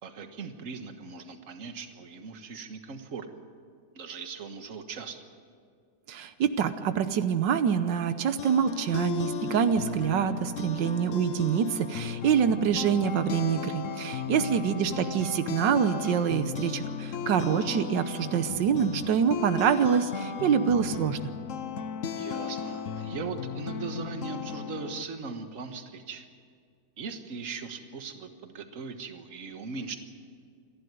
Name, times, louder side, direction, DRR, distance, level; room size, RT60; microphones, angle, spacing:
voice 1, 0.0-3.3 3.9-5.2 14.8-15.2 22.1-26.2 27.0-30.0, right 4 dB, 50° right, 7 dB, 1.7 m, -39 dB
voice 2, 6.1-21.2, right 8 dB, 90° right, 10 dB, 1.6 m, -26 dB
sound 1, 8.1-25.0, left 7 dB, 55° left, 1.1 m, -35 dB
28.5 x 11.5 x 9.4 m, 2.1 s
omnidirectional pair, 1.9 m